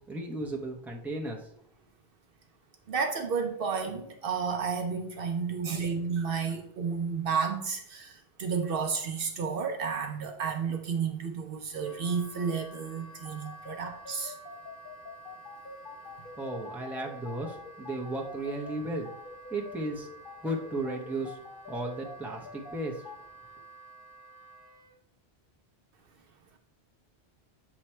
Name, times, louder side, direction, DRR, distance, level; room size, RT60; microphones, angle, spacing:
voice 1, 0.0-1.5 16.3-19.1 19.5-20.1 20.4-21.4 21.7-23.0, right 1 dB, ahead, -1 dB, 0.8 m, -35 dB
voice 2, 2.9-14.4, right 5 dB, 60° right, 4 dB, 0.8 m, -32 dB
Wind instrument woodwind instrument, 11.7-24.9, right 2 dB, 35° left, 1.6 m, -51 dB
sound 1, 13.2-23.2, left 5 dB, 55° left, 0.9 m, -45 dB
7.3 x 3.1 x 4.4 m, 0.68 s
omnidirectional pair, 1.1 m